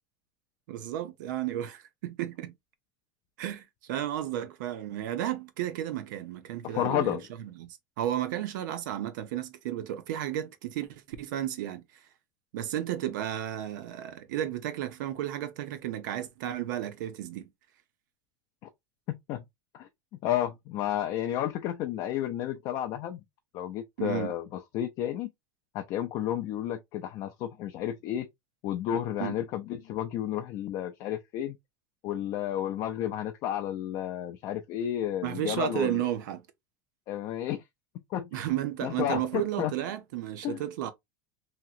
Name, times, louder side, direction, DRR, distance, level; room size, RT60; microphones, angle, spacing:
voice 1, 0.7-2.5 3.4-7.2 7.6-11.8 12.5-17.5 24.0-24.3 29.2-29.4 35.2-36.4 38.3-40.9, right 12 dB, 85° right, 0.6 m, -33 dB
voice 2, 6.6-7.3 19.1-19.4 19.7-19.9 20.2-23.2 23.5-25.3 25.7-28.3 28.6-31.6 32.0-36.1 37.1-37.6 38.1-38.4 38.8-39.7 40.4-40.6, left 11 dB, 40° left, 0.3 m, -32 dB
2.8 x 2.8 x 2.4 m
supercardioid pair, 165°, 10 cm